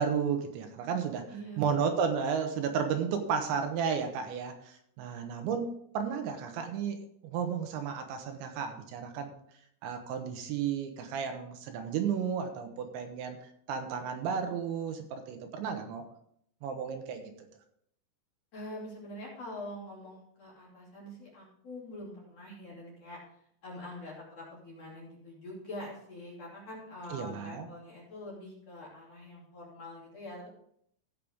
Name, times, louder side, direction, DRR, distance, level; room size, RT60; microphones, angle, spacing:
voice 1, 0.0-1.2 1.6-7.0 7.2-9.3 9.8-16.1 16.6-17.3 27.1-27.7, right 6 dB, 80° right, 6 dB, 3.1 m, -33 dB
voice 2, 1.3-1.8 18.5-23.2 23.6-30.5, left 1 dB, 40° left, -5 dB, 3.2 m, -44 dB
16.0 x 6.6 x 3.6 m, 0.70 s
omnidirectional pair, 5.5 m